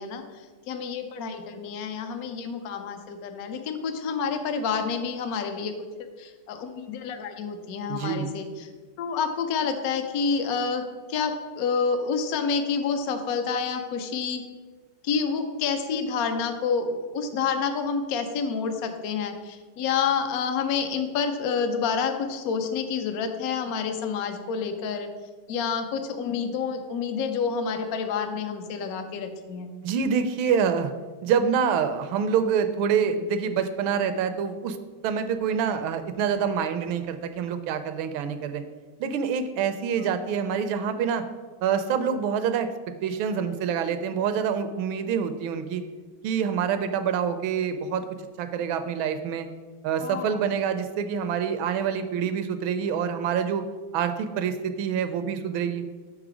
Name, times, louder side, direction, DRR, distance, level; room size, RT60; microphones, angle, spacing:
voice 1, 0.0-5.7 6.2-8.7 9.0-14.4 15.0-25.1 25.5-29.7 40.0-40.2 50.0-50.4, left 5 dB, 70° left, 6 dB, 0.9 m, -28 dB
voice 2, 7.9-8.3 29.8-30.9 31.2-34.8 35.0-38.6 39.0-41.3 41.6-42.7 43.0-45.8 46.2-48.0 48.4-49.5 49.8-53.6 53.9-55.8, right 7 dB, 80° right, 9 dB, 1.4 m, -26 dB
6.5 x 4.9 x 4.9 m, 1.4 s
omnidirectional pair, 2.2 m